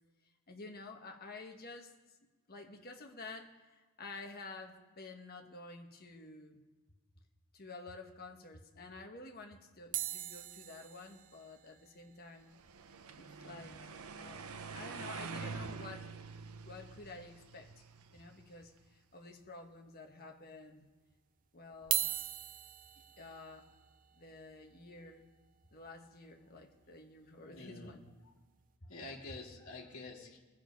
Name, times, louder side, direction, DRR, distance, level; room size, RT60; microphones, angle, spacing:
voice 1, 0.5-1.9 2.5-6.6 7.5-12.5 13.2-13.9 14.2-16.1 16.7-17.7 18.1-20.9 21.5-22.1 23.2-23.7 24.2-25.3 25.7-28.0, left 3 dB, 45° left, 1.3 m, -50 dB
sound 1, 9.9-14.3 14.6-14.7 14.8-15.0 15.4-15.5 16.9-17.0 17.7-18.2 18.7-18.8 19.6-19.7 21.7-27.8 28.4-28.6, right 12 dB, 40° right, 0.5 m, -42 dB
sound 2, 12.5-18.7, right 4 dB, 85° right, 0.7 m, -46 dB
voice 2, 27.4-28.3 28.8-30.4, left 2 dB, 70° left, 2.0 m, -48 dB
20.5 x 7.1 x 5.2 m
head